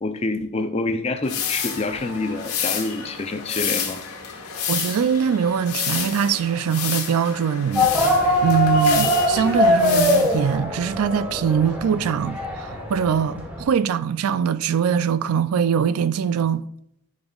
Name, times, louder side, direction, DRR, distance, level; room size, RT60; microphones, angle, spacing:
voice 1, 0.0-4.0, left 2 dB, 25° left, 0.5 m, -27 dB
sound 1, 1.2-10.6, left 7 dB, 80° left, 1.2 m, -30 dB
voice 2, 4.7-16.6, right 7 dB, 75° right, 0.3 m, -22 dB
sound 2, 7.8-13.6, left 1 dB, 5° right, 1.2 m, -21 dB
10.5 x 5.3 x 2.4 m
head